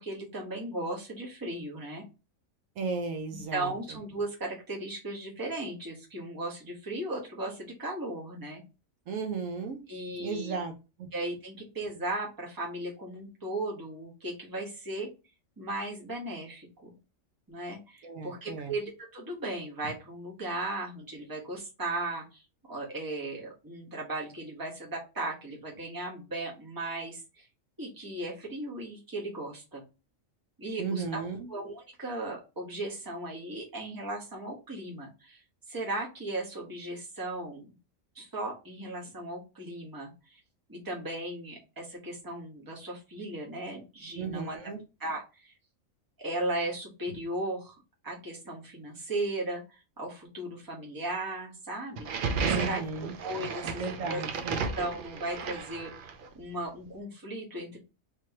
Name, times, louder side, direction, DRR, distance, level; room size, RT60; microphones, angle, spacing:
voice 1, 0.0-2.0 3.5-8.6 9.9-10.6 11.1-15.1 15.6-16.9 17.5-22.4 22.7-27.5 27.8-29.8 30.6-31.2 31.5-37.7 38.1-40.4 40.7-44.6 45.0-45.5 46.2-47.8 48.0-52.8 53.2-54.2 54.8-57.8, right 2 dB, 15° right, -3 dB, 1.1 m, -36 dB
voice 2, 2.8-3.7 9.1-9.8 10.2-10.7 11.0-11.1 18.0-18.7 30.8-31.5 44.1-44.8 52.4-53.1 53.6-54.6, right 4 dB, 75° right, 5 dB, 1.1 m, -35 dB
sound 1, 52.0-56.3, right 5 dB, 60° right, 0.5 m, -33 dB
3.6 x 3.1 x 2.8 m, 0.30 s
omnidirectional pair, 1.4 m